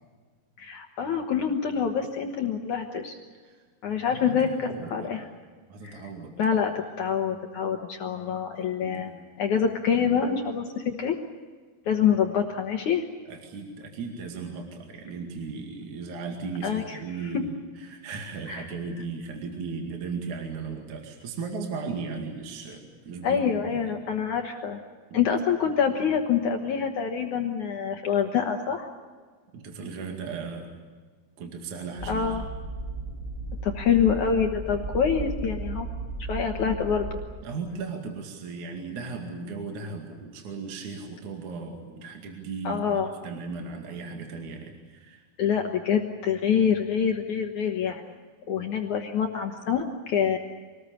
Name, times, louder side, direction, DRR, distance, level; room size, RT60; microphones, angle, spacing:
voice 1, 0.6-3.2 3.8-5.2 5.8-6.0 6.4-9.1 9.4-11.2 11.9-13.1 16.6-17.0 18.5-18.7 23.2-24.8 25.1-28.9 32.1-32.4 33.6-35.9 36.2-37.2 42.6-43.1 45.4-48.2 48.5-50.4, left 7 dB, 60° left, 3 dB, 2.4 m, -26 dB
voice 2, 4.1-5.3 5.7-6.3 8.8-9.1 13.3-17.5 17.8-23.9 25.1-25.3 29.5-30.8 31.4-32.4 37.4-45.3, right 4 dB, 50° right, 2 dB, 3.4 m, -36 dB
sound 1, 32.0-37.2, right 2 dB, 20° left, 1.5 m, -35 dB
25.5 x 19.5 x 8.6 m, 1.5 s
omnidirectional pair, 4.6 m